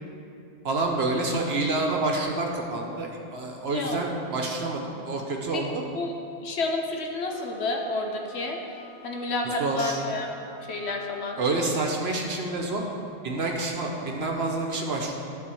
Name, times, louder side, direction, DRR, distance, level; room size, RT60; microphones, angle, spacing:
voice 1, 0.6-5.8 9.4-10.0 11.4-12.8 13.2-15.1, right 2 dB, 70° right, 1 dB, 1.2 m, -28 dB
voice 2, 3.7-4.1 5.5-5.6 5.9-6.1 6.4-8.6 9.0-11.4, left 2 dB, 80° left, 2 dB, 1.1 m, -30 dB
sound 1, 7.2-11.9, equal, 35° right, 1.0 m, -48 dB
11.5 x 4.2 x 7.0 m, 2.6 s
omnidirectional pair, 1.1 m